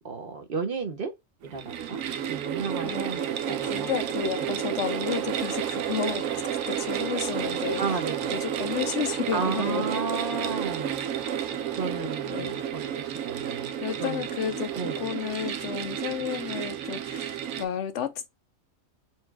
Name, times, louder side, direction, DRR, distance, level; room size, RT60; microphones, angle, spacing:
voice 1, 0.0-1.1 1.4-3.9 7.8-8.4 9.3-11.0 11.8-13.7 14.0-14.2 14.7-15.0, right 4 dB, 50° right, 0.9 m, -33 dB
sound 1, 1.4-17.6, right 9 dB, 80° right, 1.0 m, -31 dB
voice 2, 2.8-6.3 6.7-7.8 8.3-9.9 12.2-12.6 13.8-18.3, left 9 dB, 65° left, 0.9 m, -32 dB
4.5 x 2.3 x 4.5 m
omnidirectional pair, 1.4 m